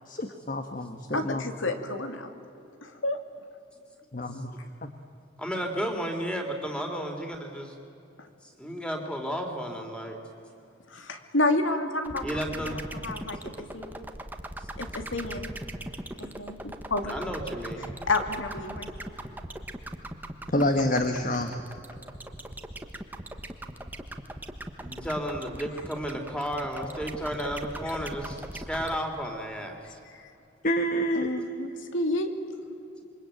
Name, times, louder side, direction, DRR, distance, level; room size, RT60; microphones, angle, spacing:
voice 1, 0.1-1.4 4.1-4.5 4.8-4.9 20.5-21.5 30.6-31.3, left 1 dB, 45° left, 6 dB, 1.4 m, -27 dB
voice 2, 1.1-2.3 2.8-3.2 10.9-13.4 13.7-14.0 14.8-15.5 16.2-17.1 18.1-18.9 30.1-30.2 31.1-32.3, left 2 dB, 85° left, 6 dB, 2.6 m, -30 dB
voice 3, 5.4-7.7 8.4-10.2 12.2-12.8 14.6-14.7 17.0-17.9 24.8-30.0, equal, 5° left, 3 dB, 3.1 m, -33 dB
sound 1, 12.0-29.0, right 1 dB, 10° right, 1.3 m, -39 dB
27.0 x 23.5 x 9.1 m, 2.8 s
head